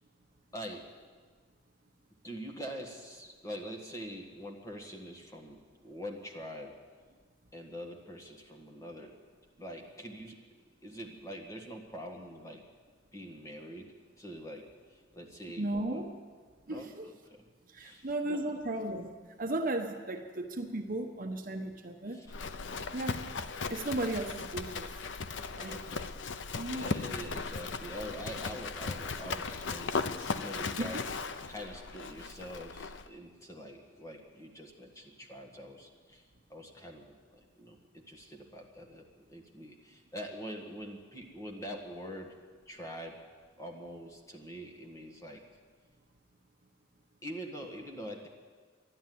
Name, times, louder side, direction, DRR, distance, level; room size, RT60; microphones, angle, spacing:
voice 1, 0.5-0.9 2.2-6.8 7.5-9.2 9.6-10.4 10.8-12.7 13.1-16.1 16.7-17.4 17.8-18.7 22.1-22.4 25.6-31.1 31.5-36.2 36.5-42.4 42.7-43.3 43.6-45.4 47.2-48.3, equal, 15° left, 0 dB, 1.7 m, -45 dB
voice 2, 15.6-16.1 16.7-17.1 17.7-19.1 19.4-22.2 22.9-23.3 23.7-24.9 25.5-25.8 26.5-26.9 30.8-30.9, right 1 dB, 50° right, 4 dB, 1.2 m, -35 dB
Livestock farm animals working animals, 22.3-33.1, left 4 dB, 75° left, 0.6 m, -37 dB
12.0 x 11.5 x 9.4 m, 1.5 s
head